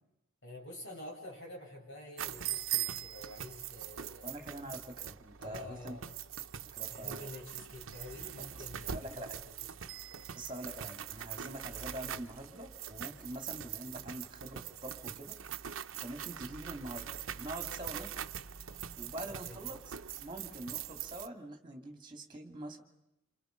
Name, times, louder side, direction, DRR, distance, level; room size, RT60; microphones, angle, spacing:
voice 1, 0.4-4.3 5.4-6.1 6.9-9.9 19.4-19.6, left 1 dB, 65° left, -1 dB, 7.7 m, -48 dB
sound 1, 2.2-21.3, right 10 dB, 85° right, 0.8 m, -42 dB
voice 2, 4.2-6.0 6.7-7.3 8.4-8.6 8.9-9.4 10.3-15.4 16.0-18.1 19.0-19.9 20.2-22.8, right 1 dB, 25° right, 5 dB, 2.8 m, -45 dB
28.5 x 27.5 x 5.3 m, 0.87 s
head